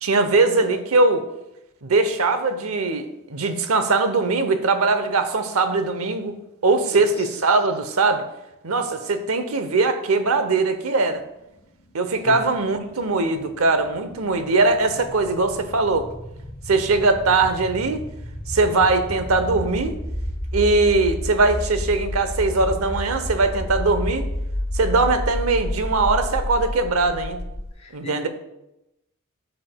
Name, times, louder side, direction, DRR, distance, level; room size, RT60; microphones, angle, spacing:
voice 1, 0.0-1.2 1.8-6.3 6.6-8.2 8.6-11.2 11.9-16.1 16.7-18.0 18.5-20.0 20.5-24.2 24.7-27.4 27.9-28.3, right 3 dB, 90° right, 9 dB, 0.8 m, -21 dB
voice 2, 6.9-7.4 12.2-12.5 27.8-28.3, left 2 dB, 30° left, -2 dB, 2.0 m, -37 dB
sound 1, 11.8-27.7, left 1 dB, 55° left, 2.6 m, -31 dB
11.0 x 6.8 x 2.3 m, 0.89 s
head